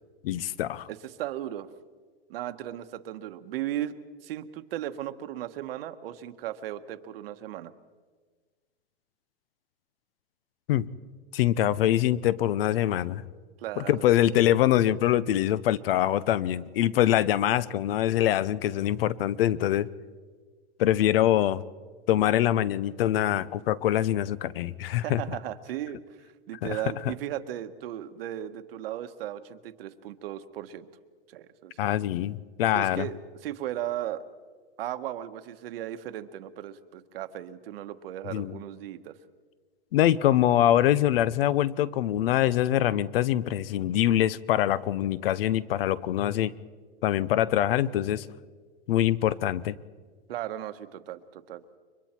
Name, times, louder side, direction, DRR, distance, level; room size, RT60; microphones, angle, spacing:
voice 1, 0.2-0.9 10.7-10.9 11.3-13.2 13.8-19.9 20.8-21.6 22.1-25.2 26.6-26.8 31.8-33.1 38.3-38.6 39.9-46.5 47.0-48.3 48.9-49.8, left 12 dB, 60° left, 18 dB, 0.9 m, -24 dB
voice 2, 0.9-1.7 2.3-3.9 4.2-7.7 13.6-14.1 25.0-26.0 26.5-30.9 31.3-31.9 32.7-34.2 34.8-39.1 50.3-51.6, right 12 dB, 60° right, 10 dB, 1.4 m, -36 dB
30.0 x 23.5 x 4.5 m, 1.5 s
supercardioid pair, 155°, 33 cm